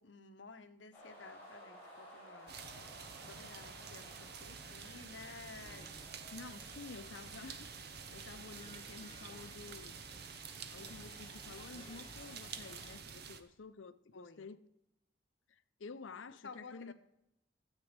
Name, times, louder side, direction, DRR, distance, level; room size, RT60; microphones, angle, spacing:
voice 1, 0.0-2.8 3.3-6.1 14.1-14.5 16.4-16.9, left 4 dB, 65° left, 1.0 m, -54 dB
sound 1, 0.9-9.4, equal, 10° left, 5.3 m, -57 dB
sound 2, 2.5-13.4, right 6 dB, 55° right, 0.9 m, -49 dB
sound 3, 5.6-13.0, left 3 dB, 25° left, 0.7 m, -59 dB
voice 2, 6.3-10.0 10.7-14.7 15.5-16.9, left 4 dB, 85° left, 0.6 m, -51 dB
12.5 x 8.3 x 5.2 m
head